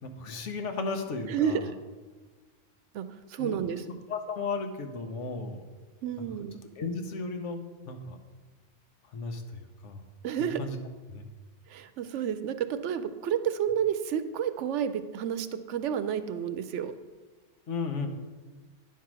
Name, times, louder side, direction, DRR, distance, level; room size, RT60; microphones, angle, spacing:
voice 1, 0.0-1.7 3.4-3.6 4.1-5.6 6.8-8.2 9.0-10.0 10.4-10.8 11.1-11.3 17.7-18.1, left 4 dB, 75° left, 6 dB, 1.2 m, -35 dB
voice 2, 1.3-1.7 2.9-3.8 6.0-6.6 10.2-10.6 11.7-16.9, right 8 dB, 75° right, 11 dB, 0.9 m, -30 dB
9.6 x 4.7 x 6.1 m, 1.3 s
omnidirectional pair, 1.3 m